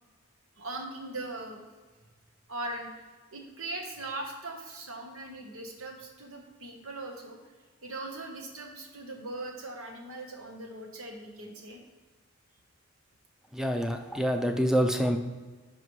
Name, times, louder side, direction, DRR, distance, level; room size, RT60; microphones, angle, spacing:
voice 1, 0.6-1.6 2.5-2.9 3.3-7.4 7.8-11.8, right 2 dB, 75° right, 2 dB, 1.2 m, -40 dB
voice 2, 13.5-15.2, equal, ahead, 5 dB, 0.5 m, -26 dB
11.0 x 4.9 x 3.2 m, 1.4 s
head